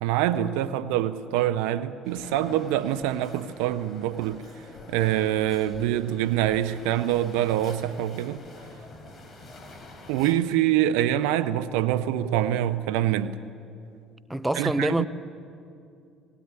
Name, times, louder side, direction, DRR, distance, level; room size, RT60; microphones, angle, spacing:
voice 1, 0.0-4.4 4.9-8.4 10.1-13.4 14.5-15.1, right 12 dB, 75° right, 0.6 m, -25 dB
sound 1, 2.0-10.4, left 2 dB, 35° left, 4.4 m, -46 dB
voice 2, 14.3-15.1, right 1 dB, 10° right, 0.8 m, -25 dB
19.5 x 18.0 x 9.7 m
hypercardioid pair, 65°, 0 cm